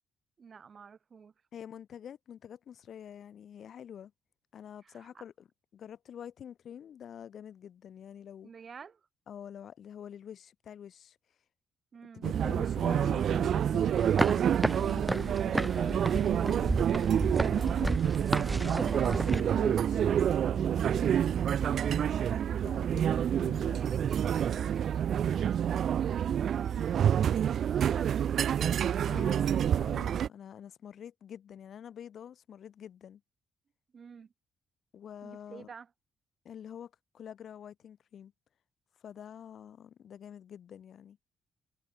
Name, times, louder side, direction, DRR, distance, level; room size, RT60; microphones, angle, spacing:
voice 1, 0.4-1.3 4.8-5.2 8.4-9.0 11.9-12.2 23.8-26.8 27.2-29.0 33.9-34.3 35.2-35.9, right 6 dB, 45° right, 2.8 m, -48 dB
voice 2, 1.5-4.1 4.5-5.5 5.7-8.5 9.3-11.2 12.1-18.0 18.5-21.1 21.6-21.8 22.1-22.2 22.6-23.8 29.1-33.2 34.9-35.7 36.4-38.3 39.0-41.2, left 9 dB, 60° left, 1.9 m, -47 dB
sound 1, 12.2-30.3, right 9 dB, 60° right, 0.4 m, -28 dB
sound 2, 14.0-19.4, right 2 dB, 15° right, 0.9 m, -32 dB
cardioid pair, 90°, 0 cm